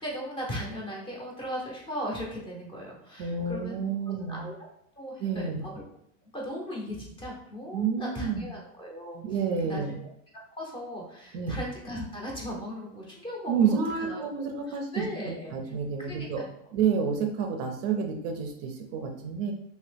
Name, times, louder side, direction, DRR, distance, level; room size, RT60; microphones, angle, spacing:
voice 1, 0.0-5.8 6.3-9.2 9.6-10.0 10.5-14.2 14.7-15.5 16.0-16.5, equal, 15° left, -2 dB, 0.6 m, -37 dB
voice 2, 3.2-4.5 5.2-5.7 7.7-8.5 9.2-10.0 11.3-11.6 13.5-15.1 15.5-16.4 16.7-19.5, right 6 dB, 50° right, 4 dB, 0.5 m, -29 dB
2.8 x 2.8 x 3.3 m, 0.72 s
supercardioid pair, 140°, 38 cm